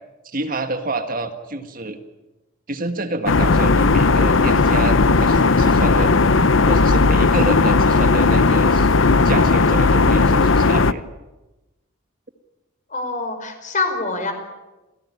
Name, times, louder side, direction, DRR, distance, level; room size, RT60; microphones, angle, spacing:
voice 1, 0.2-2.0 2.7-6.1 6.7-8.9 9.2-11.0, right 2 dB, 45° right, 7 dB, 1.8 m, -28 dB
sound 1, 3.3-10.9, left 3 dB, 65° left, 0.8 m, -16 dB
voice 2, 12.9-14.3, left 3 dB, 40° left, 6 dB, 5.2 m, -25 dB
28.0 x 17.0 x 9.8 m, 1.1 s
head